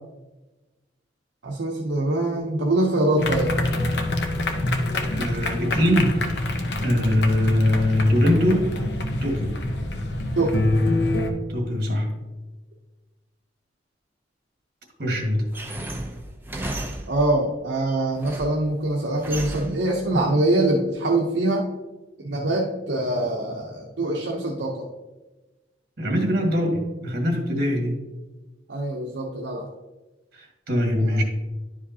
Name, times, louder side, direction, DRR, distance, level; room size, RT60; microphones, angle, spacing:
voice 1, 1.4-3.5 10.4-10.6 17.1-21.6 22.2-24.9 28.7-29.7 31.0-31.2, right 2 dB, 75° right, -2 dB, 0.8 m, -24 dB
sound 1, 3.2-11.3, left 1 dB, 65° left, 0.8 m, -25 dB
voice 2, 5.1-6.1 6.8-8.7 9.2-9.6 11.5-12.1 15.0-15.5 26.0-27.9 30.3-31.2, left 1 dB, 60° right, 2 dB, 1.6 m, -22 dB
sound 2, 15.5-17.4 17.9-18.7 19.2-19.9, right 1 dB, 10° right, 0.7 m, -34 dB
11.0 x 5.0 x 2.8 m, 1.1 s
head